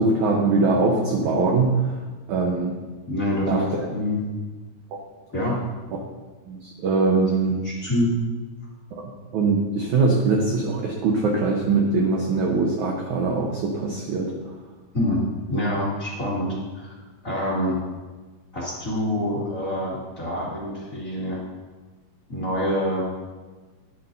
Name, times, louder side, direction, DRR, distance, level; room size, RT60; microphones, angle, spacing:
voice 1, 0.0-1.9 2.3-2.7 3.4-3.9 6.5-7.6 9.3-14.3, right 3 dB, 75° right, 0 dB, 1.8 m, -22 dB
voice 2, 3.1-3.6 3.9-4.2 5.3-5.6 7.5-8.1 14.9-15.2 15.5-17.0 17.2-17.8 18.5-21.4 22.3-23.1, left 1 dB, 30° left, -6 dB, 1.7 m, -26 dB
13.0 x 10.0 x 2.6 m, 1.3 s
omnidirectional pair, 4.6 m